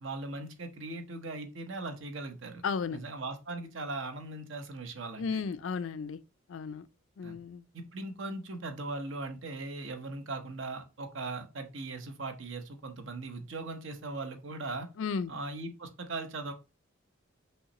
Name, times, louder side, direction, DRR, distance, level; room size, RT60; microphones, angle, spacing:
voice 1, 0.0-2.6 2.9-5.4 7.2-7.4 7.7-14.9 15.3-16.5, right 2 dB, 65° right, 0.9 m, -39 dB
voice 2, 2.6-3.0 5.2-6.2 6.5-6.8 7.2-7.6 15.0-15.3, left 5 dB, 70° left, 0.4 m, -34 dB
5.5 x 3.1 x 2.9 m
head